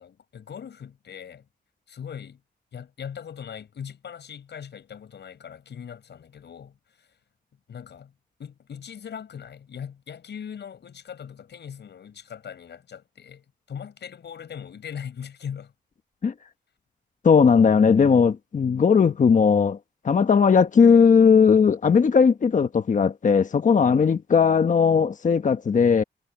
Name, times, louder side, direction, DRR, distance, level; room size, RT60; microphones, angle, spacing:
voice 1, 0.0-1.5 1.9-2.4 2.7-7.2 7.7-8.1 8.4-15.7, left 8 dB, 70° left, 5.8 m, -40 dB
voice 2, 17.2-19.8 20.0-26.0, left 6 dB, 45° left, 1.2 m, -18 dB
wide cardioid pair, 115°, 19 cm